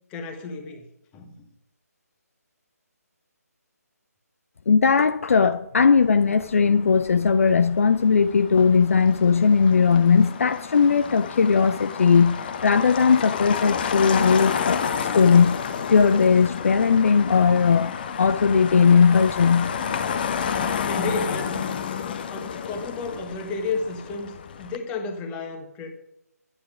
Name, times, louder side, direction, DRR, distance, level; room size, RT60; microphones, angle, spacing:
voice 1, 0.1-0.9 1.1-1.5 20.5-21.7 22.3-25.9, left 3 dB, 15° left, 1.4 m, -32 dB
voice 2, 4.7-15.6 15.9-19.7, left 5 dB, 55° left, 0.5 m, -18 dB
Motor vehicle (road), 6.0-24.8, left 7 dB, 35° left, 0.9 m, -31 dB
12.0 x 9.7 x 5.0 m
figure-of-eight pair, 155°, 9 cm